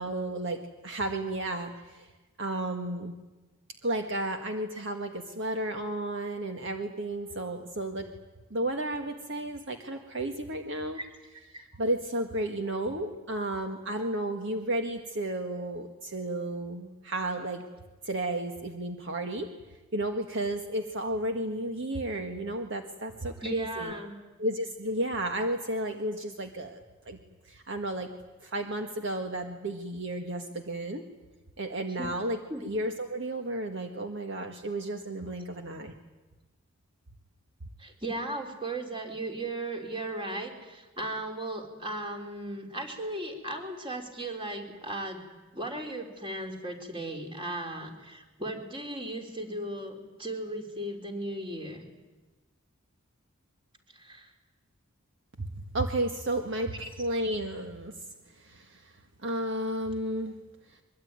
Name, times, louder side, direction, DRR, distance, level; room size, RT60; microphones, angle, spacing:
voice 1, 0.0-2.1 2.4-3.1 3.8-8.1 8.5-11.0 11.8-17.6 18.1-19.5 19.9-23.9 24.4-27.2 27.5-28.1 28.4-31.0 31.6-35.9 55.7-57.9 58.4-58.9 59.2-60.4, right 1 dB, 55° right, 5 dB, 1.7 m, -33 dB
voice 2, 23.4-24.2 32.0-32.1 32.5-32.6 37.8-45.2 45.5-51.8 53.9-54.3 56.8-56.9, right 1 dB, 25° right, 4 dB, 3.6 m, -36 dB
23.0 x 23.0 x 9.7 m, 1.2 s
head